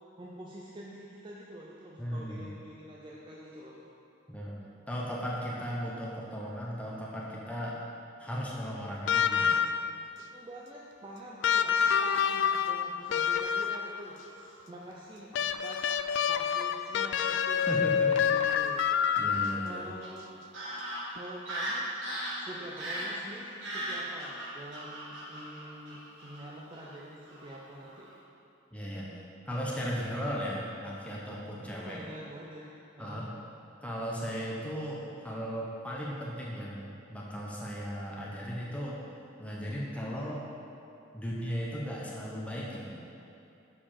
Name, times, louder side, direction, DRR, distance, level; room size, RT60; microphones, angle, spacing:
voice 1, 0.2-3.8 10.3-18.8 19.6-20.4 21.1-22.0 22.4-28.1 31.6-32.7 33.0-33.3, right 1 dB, 25° right, -4 dB, 0.5 m, -46 dB
voice 2, 2.0-2.4 4.3-4.6 4.9-7.8 8.2-9.6 17.7-18.3 19.2-19.9 28.7-29.1 29.5-32.0 33.0-33.3 33.8-39.0 39.4-40.5 41.1-43.0, equal, 5° left, -5 dB, 0.8 m, -36 dB
sound 1, 9.1-10.0 11.4-14.0 15.3-19.8 21.2-21.3, left 7 dB, 65° left, 0.3 m, -27 dB
Fowl / Bird vocalization bird call bird song, 13.9-14.6 15.4-16.0 16.9-17.0 17.3-17.7 19.3-19.5 20.0-20.1 20.5-26.4 26.7-27.0 27.3-27.5 27.9-28.1, right 1 dB, 85° right, 1.8 m, -38 dB
6.6 x 4.9 x 5.7 m, 2.8 s
head